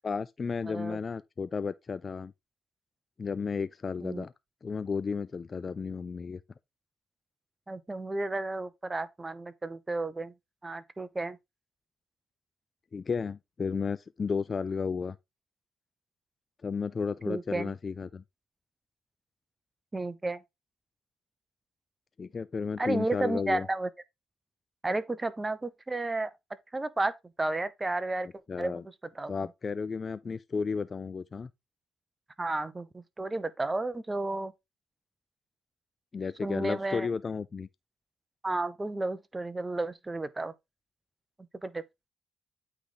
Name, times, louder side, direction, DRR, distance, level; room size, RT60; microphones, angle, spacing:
voice 1, 0.0-2.3 3.2-4.3 4.6-6.4 12.9-15.2 16.6-18.2 22.2-23.7 28.5-28.8 29.3-31.5 36.1-37.7, left 5 dB, 35° left, 0.3 m, -33 dB
voice 2, 0.7-1.0 4.0-4.3 7.7-10.3 10.6-11.4 17.3-17.7 19.9-20.4 22.8-23.9 24.8-26.3 26.7-27.1 27.4-28.3 28.6-28.8 29.1-29.3 32.4-34.5 36.4-37.1 38.4-40.5 41.6-41.8, right 2 dB, 20° right, 0.7 m, -32 dB
8.6 x 3.3 x 3.8 m
cardioid pair, 90°, 0 cm